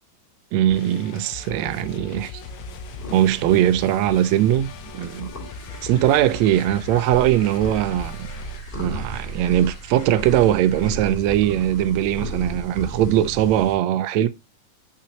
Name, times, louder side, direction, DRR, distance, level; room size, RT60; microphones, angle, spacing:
voice 1, 0.5-2.4 3.1-5.3 5.8-8.3 8.8-14.3, right 12 dB, 85° right, 1.6 m, -20 dB
sound 1, 0.7-8.6, left 5 dB, 85° left, 2.5 m, -39 dB
sound 2, 2.4-13.7, right 2 dB, 20° left, 2.9 m, -35 dB
sound 3, 5.4-10.9, left 3 dB, 40° left, 3.1 m, -48 dB
8.5 x 6.3 x 2.9 m
omnidirectional pair, 3.9 m